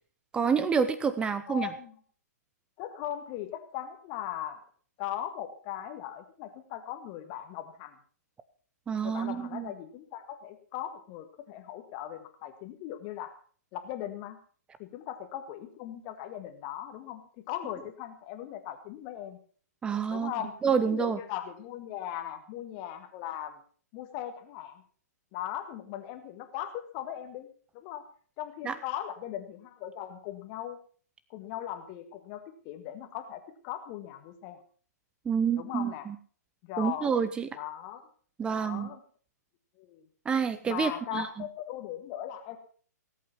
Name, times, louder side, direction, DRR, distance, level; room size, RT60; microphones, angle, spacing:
voice 1, 0.3-1.7 8.9-9.7 19.8-20.3 20.6-21.2 28.6-28.8 35.3-36.2 36.8-37.5 38.4-38.9 40.3-41.3, right 6 dB, 10° right, 14 dB, 0.7 m, -28 dB
voice 2, 1.5-1.9 2.8-4.6 5.0-8.0 9.0-13.3 13.7-14.4 14.8-17.2 17.5-19.4 20.1-20.5 20.9-23.6 23.9-24.8 25.3-27.5 27.7-28.0 28.4-30.8 31.3-34.6 35.6-36.1 36.6-37.1 37.5-38.1 38.4-39.0 39.8-40.1 40.6-42.6, left 11 dB, 30° left, 6 dB, 1.6 m, -39 dB
18.5 x 8.5 x 5.7 m, 0.44 s
figure-of-eight pair, 125°, 9 cm